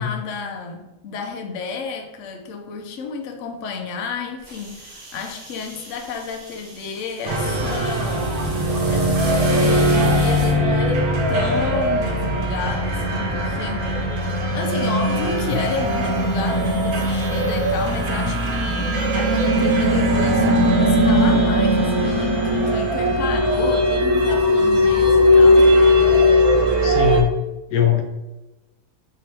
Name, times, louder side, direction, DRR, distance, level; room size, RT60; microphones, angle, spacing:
voice 1, 0.0-8.4 8.9-14.1 14.5-25.7, left 5 dB, 65° left, 4 dB, 0.9 m, -31 dB
sound 1, 4.4-10.5, right 2 dB, 35° right, 1.0 m, -38 dB
sound 2, 7.3-27.2, equal, 90° right, 1.2 m, -19 dB
voice 2, 26.8-27.4 27.7-28.0, left 9 dB, 85° left, 5 dB, 1.1 m, -20 dB
3.7 x 3.2 x 4.3 m, 1.0 s
omnidirectional pair, 1.5 m